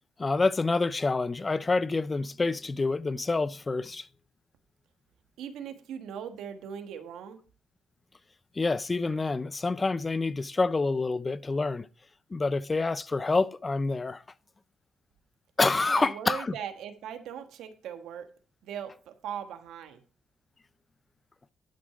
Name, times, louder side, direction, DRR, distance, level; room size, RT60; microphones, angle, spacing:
voice 1, 0.2-4.1 8.6-11.9 12.3-14.2 15.6-16.6, left 3 dB, 25° left, 0.5 m, -27 dB
voice 2, 5.4-7.4 15.9-18.3 18.6-20.0, right 8 dB, 85° right, 1.3 m, -39 dB
11.5 x 6.1 x 4.8 m
cardioid pair, 90°, 0 cm